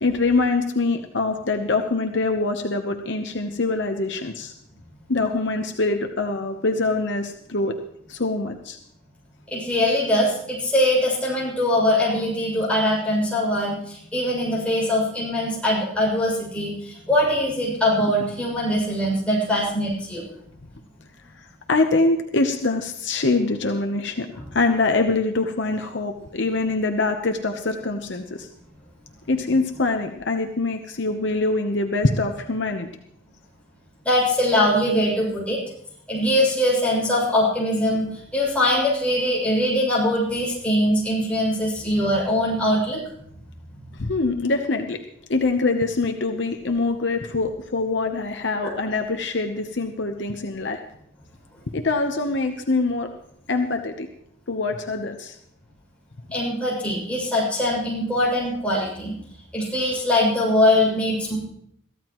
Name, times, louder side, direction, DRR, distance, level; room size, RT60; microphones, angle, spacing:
voice 1, 0.0-4.5 5.1-7.8 8.1-8.8 21.7-24.3 24.5-28.5 29.3-32.9 44.0-45.0 45.3-50.8 51.7-53.1 53.5-54.1 54.5-55.3, left 3 dB, 60° left, 5 dB, 0.9 m, -24 dB
voice 2, 9.5-20.2 24.4-24.5 34.0-35.6 36.1-43.0 48.6-48.8 56.3-59.1 59.5-61.4, left 1 dB, 5° left, -5 dB, 6.6 m, -22 dB
22.5 x 14.5 x 3.1 m, 0.72 s
head